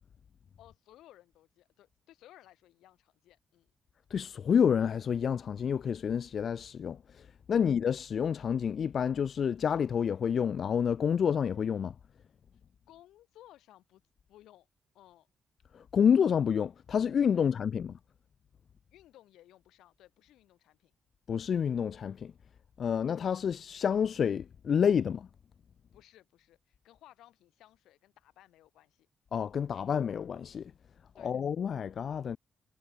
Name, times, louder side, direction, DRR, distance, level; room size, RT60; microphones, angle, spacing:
voice 1, 0.6-3.7 7.6-7.7 12.9-14.0 14.3-14.7 14.9-15.3 17.3-17.5 18.9-20.9 25.9-29.1 31.2-31.4, left 14 dB, 90° left, 3.9 m, -59 dB
voice 2, 4.1-7.0 7.5-11.9 15.9-17.9 21.3-22.3 22.8-25.3 29.3-30.7 31.2-32.4, left 7 dB, 60° left, 0.4 m, -28 dB
cardioid pair, 75°, 0 cm